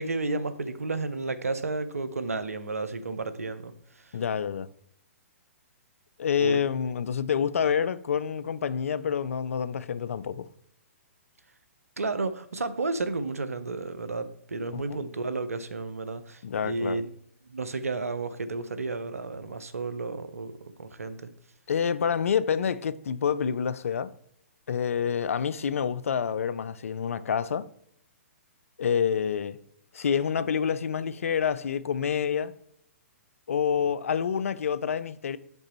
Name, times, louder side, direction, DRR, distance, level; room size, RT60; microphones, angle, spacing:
voice 1, 0.0-4.2 6.4-6.6 12.0-17.1 17.4-21.3, right 3 dB, 90° right, 0.6 m, -32 dB
voice 2, 4.1-4.7 6.2-10.5 14.7-15.0 16.4-17.0 21.7-24.1 24.7-27.7 28.8-29.6 29.9-32.5 33.5-35.4, left 7 dB, 75° left, 0.4 m, -27 dB
6.7 x 5.3 x 3.0 m
hypercardioid pair, 125°, 8 cm